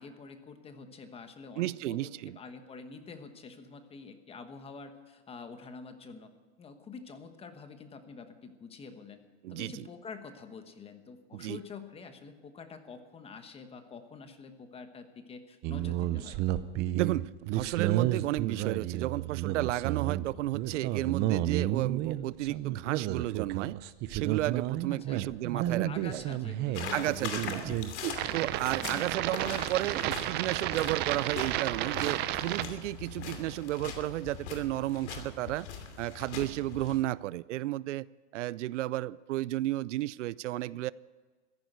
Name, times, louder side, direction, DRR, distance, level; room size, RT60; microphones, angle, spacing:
voice 1, 0.0-6.3 6.6-9.2 9.5-16.4 24.9-27.1 28.8-29.1, left 5 dB, 15° left, 1.2 m, -47 dB
voice 2, 1.6-2.4 9.4-9.8 11.3-11.6 16.9-23.8 24.1-26.2 26.9-35.7 36.0-38.1 38.3-40.9, right 16 dB, 85° right, 0.5 m, -33 dB
sound 1, 15.6-32.6, right 14 dB, 30° right, 0.5 m, -32 dB
sound 2, 26.7-37.0, left 6 dB, 70° left, 2.7 m, -42 dB
14.5 x 10.5 x 8.0 m
supercardioid pair, 140°, 35 cm